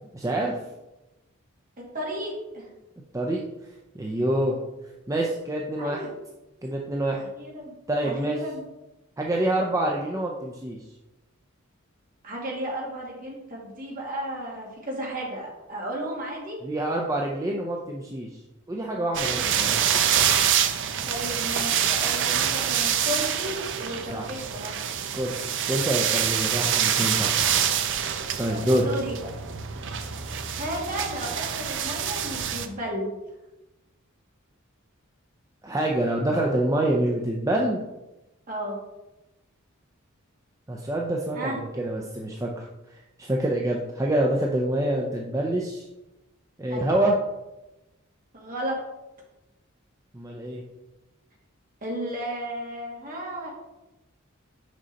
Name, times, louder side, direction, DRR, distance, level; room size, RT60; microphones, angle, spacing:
voice 1, 0.0-0.5 3.1-3.4 3.9-4.6 5.1-6.1 6.6-7.2 7.9-8.4 9.2-10.8 16.6-18.4 18.7-19.7 24.1-24.2 24.9-25.3 25.7-27.4 28.4-28.9 35.6-37.8 40.7-42.7 42.9-45.9 46.6-47.2 50.1-50.6, right 1 dB, 15° right, -1 dB, 0.6 m, -26 dB
voice 2, 1.9-2.7 5.8-6.1 7.4-7.7 8.0-8.6 12.2-16.6 19.3-19.5 21.1-24.7 28.5-29.1 30.6-33.1 38.5-38.8 41.3-41.6 46.7-47.0 48.3-48.8 51.8-53.5, right 1 dB, 40° right, -3 dB, 2.3 m, -33 dB
sound 1, 19.1-32.7, right 9 dB, 60° right, 0.6 m, -26 dB
6.3 x 5.5 x 4.1 m, 0.99 s
head